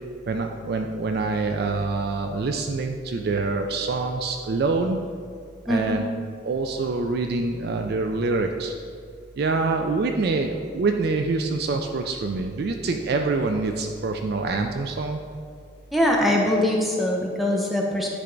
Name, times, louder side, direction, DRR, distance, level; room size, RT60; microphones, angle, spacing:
voice 1, 0.3-5.0 5.7-6.0 6.4-8.7 9.4-15.2, right 3 dB, 50° right, 4 dB, 0.3 m, -25 dB
voice 2, 5.7-6.1 15.9-18.1, left 1 dB, ahead, -1 dB, 0.6 m, -22 dB
9.5 x 3.4 x 3.9 m, 2.2 s
head